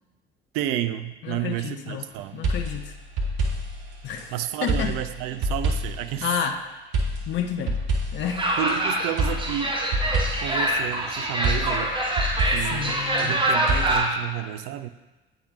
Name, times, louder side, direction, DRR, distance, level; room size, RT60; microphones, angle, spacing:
voice 1, 0.5-2.4 4.3-6.5 8.6-9.8 10.4-11.9 12.5-14.9, right 12 dB, 50° right, 11 dB, 0.4 m, -31 dB
voice 2, 1.2-2.9 4.0-4.3 4.6-4.9 6.2-6.6 7.3-7.8 8.1-8.5 12.6-13.4, left 8 dB, 40° left, 6 dB, 0.6 m, -30 dB
sound 1, 2.4-4.3 4.7-6.1 6.9-8.7 9.2-10.6 11.4-13.3 13.7-14.0, right 1 dB, 65° right, 1.0 m, -27 dB
sound 2, 8.2-14.2, right 1 dB, 15° right, 1.1 m, -25 dB
8.5 x 4.8 x 2.6 m, 1.1 s
figure-of-eight pair, 55°, 30 cm